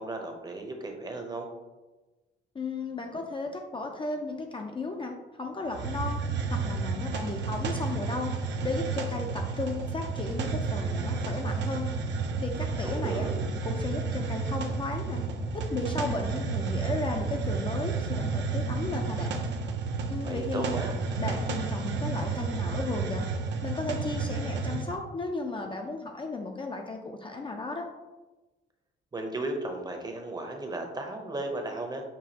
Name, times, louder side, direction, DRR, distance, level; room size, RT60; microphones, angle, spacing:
voice 1, 0.0-1.5 12.8-13.4 20.2-20.9 29.1-32.0, right 2 dB, 20° right, 3 dB, 0.7 m, -35 dB
voice 2, 2.5-11.9 12.4-13.3 13.6-15.2 15.5-19.4 20.1-20.8 21.2-23.3 23.6-27.9, left 3 dB, 25° left, 3 dB, 0.4 m, -35 dB
Hiss, 5.7-25.0, right 4 dB, 65° right, 0.6 m, -31 dB
6.0 x 2.4 x 2.8 m, 1.1 s
cardioid pair, 90°, 20 cm